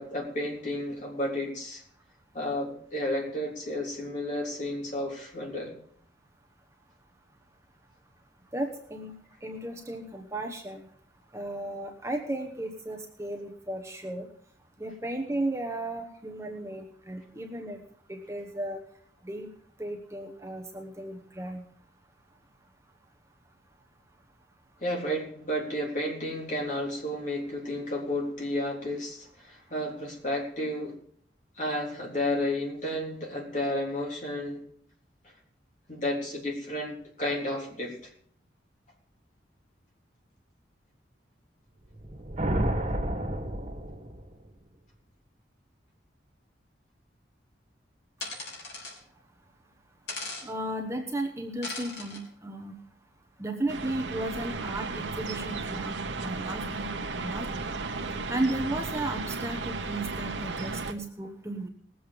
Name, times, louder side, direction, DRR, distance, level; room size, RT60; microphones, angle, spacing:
voice 1, 0.0-1.8 2.3-5.8 24.8-31.0 31.6-34.6 35.2-35.3 35.9-38.1, left 1 dB, 40° left, -1 dB, 3.6 m, -32 dB
voice 2, 8.5-9.1 9.4-10.8 11.3-14.3 14.8-17.8 18.1-18.8 19.2-19.5 19.8-21.6 50.4-52.7 53.4-56.9 57.2-57.7 58.3-61.7, right 1 dB, 15° right, 3 dB, 1.0 m, -34 dB
sound 1, 41.9-44.4, right 1 dB, 35° right, 2.2 m, -30 dB
sound 2, 48.2-49.0 50.1-50.5 51.6-52.2, left 3 dB, 60° left, 3.9 m, -38 dB
sound 3, 53.7-60.9, right 3 dB, 80° right, 1.1 m, -34 dB
19.5 x 7.8 x 5.2 m, 0.62 s
head